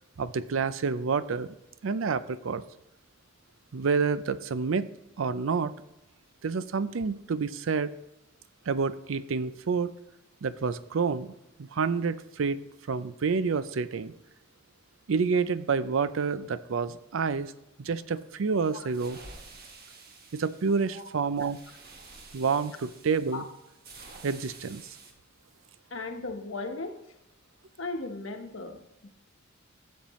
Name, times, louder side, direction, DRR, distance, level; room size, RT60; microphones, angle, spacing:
voice 1, 0.2-1.5 1.8-2.6 3.7-4.9 5.2-5.7 6.4-7.9 8.7-9.9 10.4-11.3 11.6-12.6 12.9-14.1 15.1-17.5 17.8-19.2 20.3-21.6 22.3-23.4 24.2-24.8, right 5 dB, 75° right, 15 dB, 0.5 m, -28 dB
sound 1, 18.6-25.1, right 3 dB, 50° right, 1.4 m, -50 dB
voice 2, 25.9-27.0 27.8-29.1, left 3 dB, 75° left, 5 dB, 1.1 m, -37 dB
13.0 x 7.3 x 3.1 m, 0.88 s
head